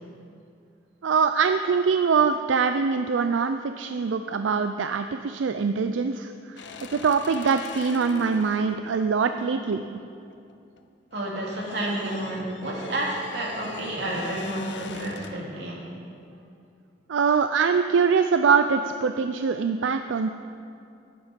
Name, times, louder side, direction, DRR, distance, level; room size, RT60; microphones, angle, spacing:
voice 1, 1.0-6.6 6.9-10.0 17.1-20.3, right 5 dB, 90° right, 8 dB, 0.4 m, -23 dB
sound 1, 6.6-10.8 11.1-15.5, left 4 dB, 75° left, 0.7 m, -42 dB
voice 2, 11.1-15.9, right 1 dB, 65° right, -3 dB, 2.8 m, -30 dB
14.5 x 10.0 x 5.2 m, 2.5 s
head